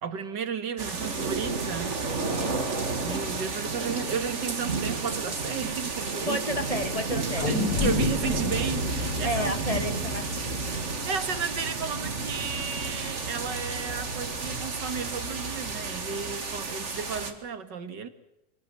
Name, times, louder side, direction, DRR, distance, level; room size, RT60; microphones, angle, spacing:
voice 1, 0.0-2.0 3.0-6.5 7.5-9.6 9.8-9.9 11.0-18.1, right 6 dB, 90° right, 10 dB, 2.4 m, -33 dB
sound 1, 0.8-17.3, right 4 dB, 45° right, 2.3 m, -31 dB
voice 2, 2.1-2.6 6.2-7.5 9.2-10.8, left 1 dB, 20° left, 8 dB, 1.6 m, -32 dB
sound 2, 7.4-11.9 12.3-12.4, left 3 dB, 65° left, 5.3 m, -31 dB
24.0 x 19.0 x 7.7 m, 0.91 s
omnidirectional pair, 1.8 m